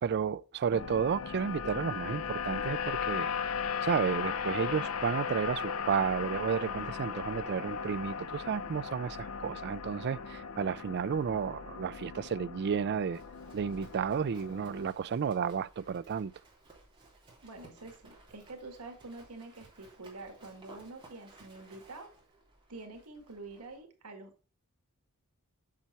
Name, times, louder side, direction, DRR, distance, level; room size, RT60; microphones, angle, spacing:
voice 1, 0.0-3.3 3.8-13.2 13.5-16.3, right 6 dB, 50° right, 0.3 m, -32 dB
sound 1, 0.7-14.9, left 6 dB, 70° left, 0.6 m, -37 dB
Livestock farm animals working animals, 13.0-23.8, right 2 dB, 20° right, 3.3 m, -58 dB
voice 2, 17.4-22.1 22.7-24.5, right 3 dB, 90° right, 1.8 m, -47 dB
7.5 x 6.8 x 4.2 m
head